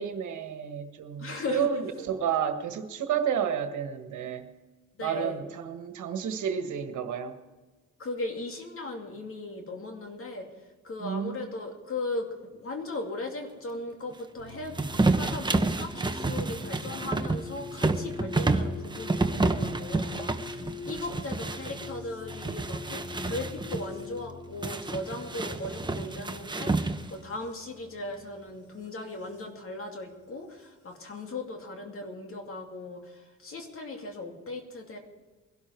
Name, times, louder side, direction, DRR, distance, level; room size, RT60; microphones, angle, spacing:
voice 1, 0.0-4.5 5.0-7.4 11.0-11.5 21.1-21.2, right 8 dB, 75° right, 7 dB, 1.6 m, -31 dB
voice 2, 1.2-1.7 5.0-5.4 8.0-10.5 10.8-14.8 15.1-35.0, left 2 dB, 45° left, 3 dB, 2.6 m, -38 dB
sound 1, 14.4-29.4 30.6-31.2, left 4 dB, 85° left, 5.6 m, -44 dB
sound 2, 14.7-21.9 22.3-23.8 24.6-27.2, right 3 dB, 15° right, 1.1 m, -29 dB
21.0 x 12.0 x 4.6 m, 1.2 s
cardioid pair, 90°, 30 cm